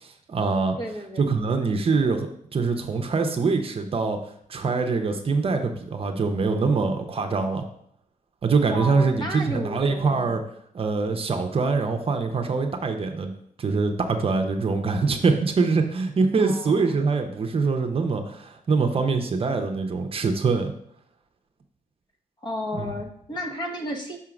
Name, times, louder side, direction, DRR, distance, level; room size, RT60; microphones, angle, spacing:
voice 1, 0.0-0.8 1.2-4.2 4.5-7.6 8.4-10.4 10.7-13.3 13.6-20.7 22.7-22.9, right 4 dB, 45° right, 5 dB, 0.7 m, -24 dB
voice 2, 0.8-1.3 8.7-10.4 16.4-17.0 22.4-24.2, equal, 35° left, 2 dB, 1.2 m, -33 dB
5.8 x 3.7 x 5.9 m, 0.68 s
wide cardioid pair, 125°, 14 cm